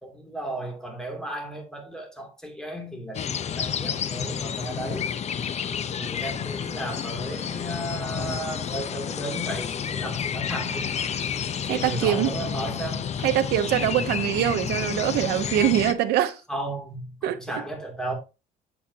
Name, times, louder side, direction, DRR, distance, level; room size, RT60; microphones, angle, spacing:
voice 1, 0.0-5.1 6.0-10.9 11.6-13.1 13.9-14.1 16.5-18.1, right 1 dB, 5° left, 2.7 m, -34 dB
sound 1, 3.1-15.9, left 8 dB, 40° left, 0.7 m, -30 dB
voice 2, 11.7-12.3 13.2-16.4 17.2-17.6, right 12 dB, 80° right, 0.8 m, -24 dB
8.7 x 7.3 x 2.8 m
cardioid pair, 110°, 17 cm